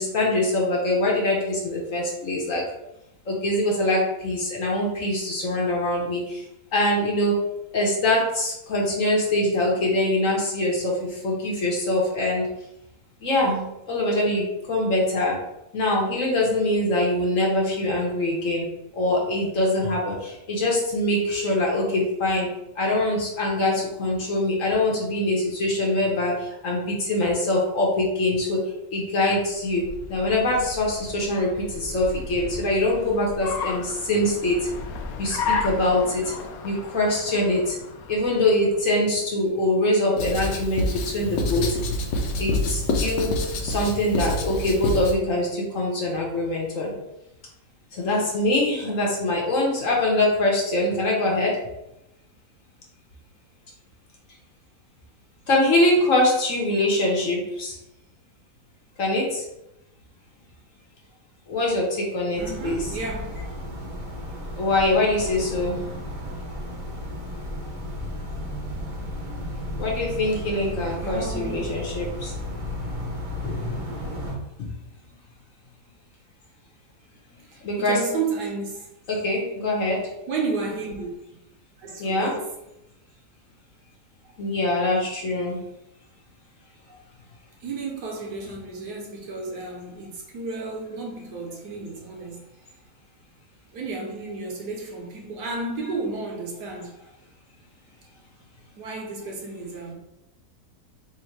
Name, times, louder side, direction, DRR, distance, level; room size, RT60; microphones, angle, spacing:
voice 1, 0.0-2.6 3.3-6.4 6.7-7.3 7.7-12.4 13.2-15.4 15.7-18.7 19.0-22.5 22.8-26.4 26.6-28.6 28.9-29.8 30.1-34.6 35.2-36.2 36.6-37.7 38.1-40.9 41.1-41.7 42.4-43.3 43.6-46.9 47.9-51.6 55.5-57.7 59.0-59.4 61.5-62.8 64.6-65.8 69.8-72.3 73.4-73.7 74.6-74.7 77.6-78.0 79.1-80.0 82.0-82.3 84.4-85.6, left 1 dB, 55° left, 1.3 m, -23 dB
Car, 29.5-39.0, left 4 dB, 70° left, 1.0 m, -34 dB
Writing, 40.2-45.2, left 2 dB, 85° left, 1.3 m, -27 dB
sound 1, 62.4-74.3, equal, 40° right, 0.8 m, -33 dB
voice 2, 62.4-63.4 71.0-71.7 77.5-78.9 80.3-81.1 81.8-82.5 86.9-87.0 87.6-92.5 93.7-96.9 98.8-99.9, right 3 dB, 75° right, 1.4 m, -32 dB
3.5 x 2.7 x 4.5 m
omnidirectional pair, 1.8 m